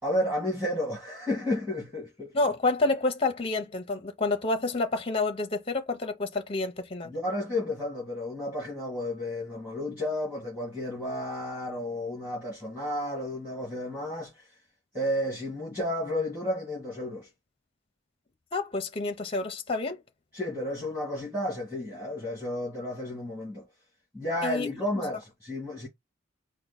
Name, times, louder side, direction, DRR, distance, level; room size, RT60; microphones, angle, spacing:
voice 1, 0.0-2.3 7.1-14.5 14.9-17.3 20.3-23.7 24.1-25.9, left 1 dB, 10° right, 2.0 m, -32 dB
voice 2, 2.3-7.1 18.5-20.0 24.4-24.8, left 3 dB, 25° left, 0.6 m, -29 dB
4.5 x 2.1 x 4.0 m
head